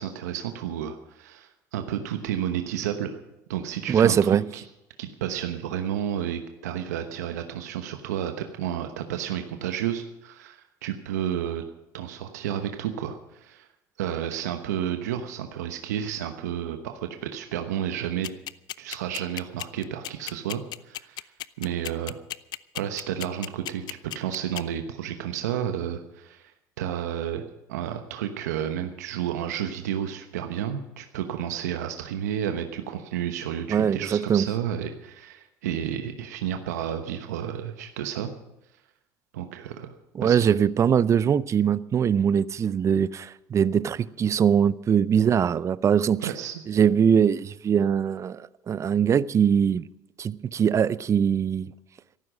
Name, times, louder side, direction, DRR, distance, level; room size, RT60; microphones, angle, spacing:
voice 1, 0.0-3.2 3.5-4.6 5.0-11.6 11.9-13.7 14.0-18.3 18.8-21.3 21.6-22.1 22.7-23.8 24.1-26.5 26.8-27.4 27.7-38.3 39.3-39.9 40.2-40.4 46.2-46.6, right 10 dB, 85° right, 1.1 m, -31 dB
voice 2, 3.9-4.4 33.7-34.5 40.1-46.3 46.7-49.8 50.2-51.7, right 8 dB, 35° right, 0.6 m, -22 dB
sound 1, 18.2-24.6, left 14 dB, 55° left, 0.5 m, -34 dB
14.0 x 12.5 x 6.3 m
hypercardioid pair, 85°, 9 cm